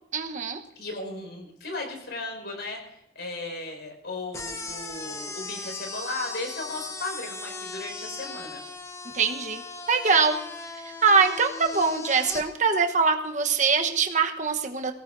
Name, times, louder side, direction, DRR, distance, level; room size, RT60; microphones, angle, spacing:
voice 1, 0.1-0.6 9.1-9.6 9.9-10.4 11.0-14.9, right 5 dB, 40° right, 5 dB, 1.1 m, -23 dB
voice 2, 0.8-8.6, left 2 dB, 70° left, 2 dB, 5.2 m, -36 dB
sound 1, 4.3-12.4, left 3 dB, 15° left, 0.9 m, -38 dB
22.5 x 17.5 x 2.7 m, 0.84 s
head